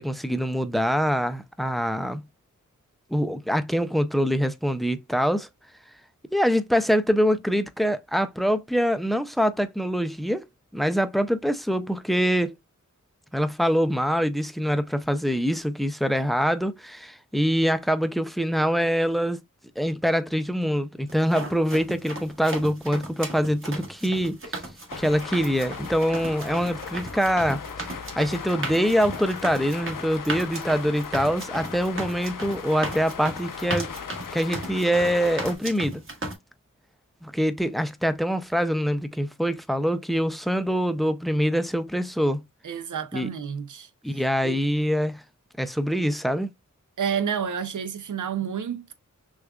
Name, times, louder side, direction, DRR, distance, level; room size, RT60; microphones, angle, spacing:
voice 1, 0.0-2.2 3.1-5.5 6.3-10.5 10.7-12.5 13.3-19.4 19.8-24.4 25.0-27.6 28.2-33.9 34.3-36.0 37.2-42.4 43.1-43.3 44.0-45.2 45.6-46.5, equal, ahead, 0.4 m, -24 dB
sound 1, 21.1-36.3, right 2 dB, 40° right, 1.5 m, -36 dB
sound 2, 24.9-35.5, left 6 dB, 85° left, 0.7 m, -38 dB
voice 2, 42.6-44.6 47.0-48.9, right 7 dB, 70° right, 0.6 m, -30 dB
6.2 x 2.4 x 2.3 m
wide cardioid pair, 90°, 32 cm